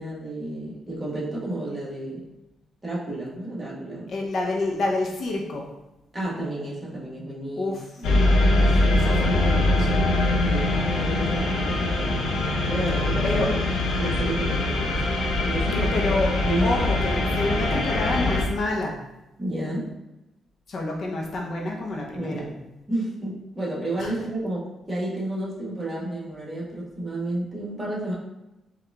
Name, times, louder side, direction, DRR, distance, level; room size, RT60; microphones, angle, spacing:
voice 1, 0.0-2.2 2.8-4.1 6.1-7.7 8.1-9.5 10.4-12.3 12.7-15.0 15.4-15.9 16.4-16.7 17.3-17.4 19.4-19.9 22.1-22.6 22.9-28.1, right 1 dB, 15° right, -6 dB, 1.2 m, -31 dB
voice 2, 4.1-5.7 7.6-7.9 8.6-10.0 13.2-13.5 15.8-16.3 16.6-19.0 20.7-22.4 24.0-24.1, left 2 dB, 50° left, -1 dB, 0.6 m, -28 dB
sound 1, 8.0-18.4, left 2 dB, 85° left, 0.7 m, -23 dB
4.7 x 2.4 x 3.4 m, 0.95 s
cardioid pair, 125°, 0 cm